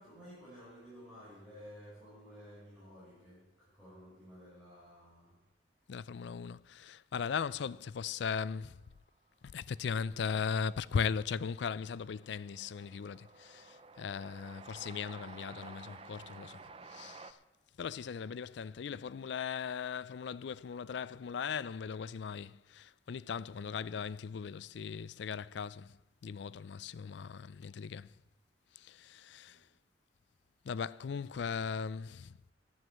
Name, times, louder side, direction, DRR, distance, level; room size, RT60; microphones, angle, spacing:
voice 1, 0.0-5.4 29.5-29.6 31.2-31.3, equal, ahead, 5.4 m, -53 dB
voice 2, 5.9-8.8 9.4-16.6 16.9-17.4 17.8-26.0 26.2-28.1 28.8-29.6 30.6-32.4, left 6 dB, 65° left, 0.4 m, -38 dB
Train, 10.2-17.3, right 4 dB, 30° right, 0.5 m, -53 dB
11.0 x 9.7 x 7.4 m
head